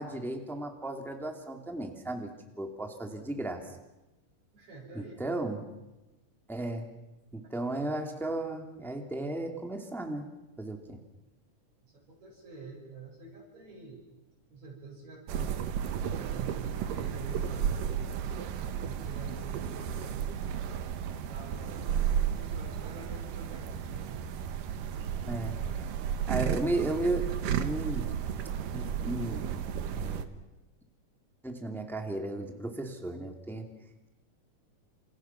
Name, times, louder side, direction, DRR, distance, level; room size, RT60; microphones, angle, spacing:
voice 1, 0.0-3.7 4.9-5.7 6.5-6.9 7.3-10.3 10.6-11.0 25.3-25.6 26.3-28.1 28.7-29.6 29.9-30.3 31.4-33.7, right 2 dB, ahead, 4 dB, 2.1 m, -35 dB
voice 2, 4.5-5.2 11.8-14.1 14.5-15.7 16.0-18.1 18.8-20.3 21.3-24.3, right 4 dB, 55° right, -2 dB, 6.9 m, -47 dB
sound 1, 15.3-30.3, right 8 dB, 80° right, 2.9 m, -33 dB
29.5 x 27.5 x 6.0 m, 1.0 s
omnidirectional pair, 3.8 m